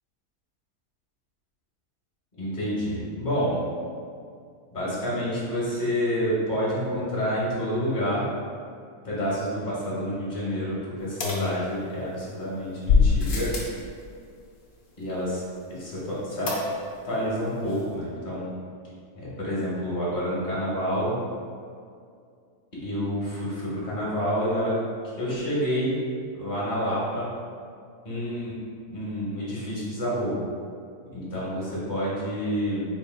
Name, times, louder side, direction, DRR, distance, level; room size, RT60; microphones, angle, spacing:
voice 1, 2.4-3.6 4.7-8.3 9.0-13.6 15.0-15.4 15.7-16.5 17.0-18.5 19.1-21.2 22.8-26.0 26.4-27.3 28.0-28.5 28.9-30.4 31.1-32.9, equal, 40° left, -8 dB, 1.2 m, -28 dB
sound 1, 11.2-12.2 12.9-13.8 16.5-17.1 17.4-17.5 17.7-17.8, left 5 dB, 90° left, 1.2 m, -24 dB
4.2 x 3.7 x 2.2 m, 2.3 s
omnidirectional pair, 1.5 m